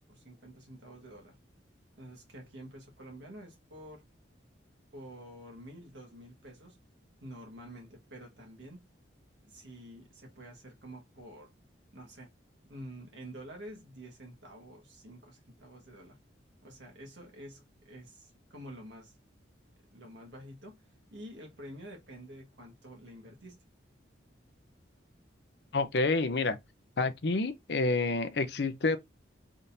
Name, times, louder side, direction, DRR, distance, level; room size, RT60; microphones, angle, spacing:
voice 1, 0.0-1.4 2.0-4.0 4.9-6.8 7.2-8.9 9.4-11.5 11.9-12.3 12.7-16.2 16.6-19.1 19.9-20.7 21.1-23.6, right 1 dB, 70° right, 1.6 m, -48 dB
voice 2, 25.7-26.6 27.0-29.0, left 3 dB, 60° left, 0.6 m, -28 dB
3.9 x 3.7 x 2.7 m
head